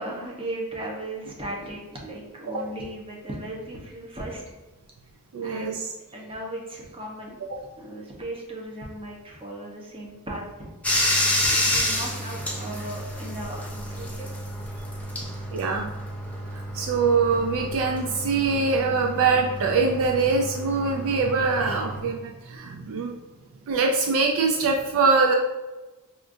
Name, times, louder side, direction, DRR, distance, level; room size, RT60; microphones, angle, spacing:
voice 1, 0.0-4.4 5.4-5.7 6.1-7.4 7.8-10.7 11.5-14.3 24.6-24.7, right 1 dB, 25° right, -2 dB, 0.8 m, -36 dB
voice 2, 5.3-5.9 7.5-7.6 15.5-15.9 16.7-23.1 23.7-25.3, right 4 dB, 65° right, 2 dB, 0.4 m, -23 dB
Bathtub (filling or washing), 10.8-22.0, left 1 dB, 5° left, 0.4 m, -30 dB
4.9 x 2.4 x 2.5 m, 1.1 s
head